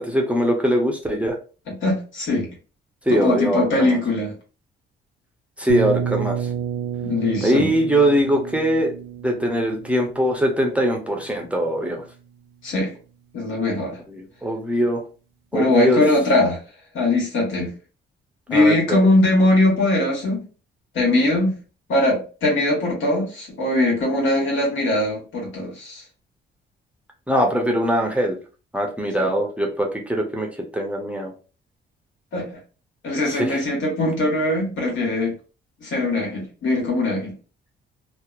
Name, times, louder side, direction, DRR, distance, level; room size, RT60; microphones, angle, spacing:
voice 1, 0.0-1.4 3.1-4.0 5.6-6.5 7.4-8.9 9.2-12.0 14.1-15.0 15.5-16.0 18.5-19.0 27.3-28.4 28.7-30.5 30.7-31.3 33.3-33.6, equal, 5° right, 1 dB, 0.6 m, -21 dB
voice 2, 1.7-2.5 3.1-4.3 7.0-7.7 12.6-12.9 13.3-14.0 15.5-16.6 16.9-17.7 18.5-20.4 20.9-21.6 21.9-26.0 29.2-29.3 32.3-32.5 33.0-35.3 35.8-37.4, left 2 dB, 75° left, -1 dB, 1.3 m, -21 dB
sound 1, 5.7-11.5, right 8 dB, 55° right, 0.4 m, -30 dB
2.8 x 2.0 x 2.3 m, 0.35 s
cardioid pair, 90°, 20 cm